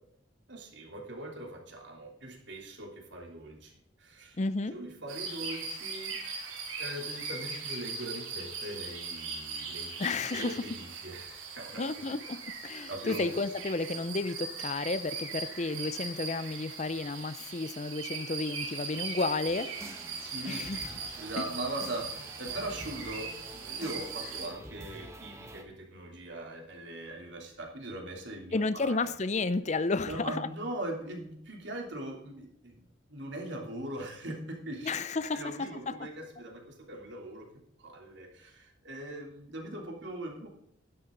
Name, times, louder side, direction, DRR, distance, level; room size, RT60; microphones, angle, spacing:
voice 1, 0.5-4.4 4.7-6.2 6.8-9.9 10.3-12.0 12.9-13.4 20.3-20.7 21.1-29.1 30.0-32.8 33.1-34.9 35.3-37.5 37.8-40.5, right 1 dB, 60° right, 3.3 m, -41 dB
voice 2, 4.4-4.8 10.0-10.7 11.8-19.8 20.5-20.9 21.4-21.5 28.5-30.5 34.8-36.1, left 3 dB, 35° left, 0.5 m, -32 dB
sound 1, 5.1-24.5, right 4 dB, 90° right, 3.5 m, -40 dB
sound 2, 19.5-25.6, right 1 dB, 15° right, 1.4 m, -47 dB
12.5 x 11.0 x 3.9 m
head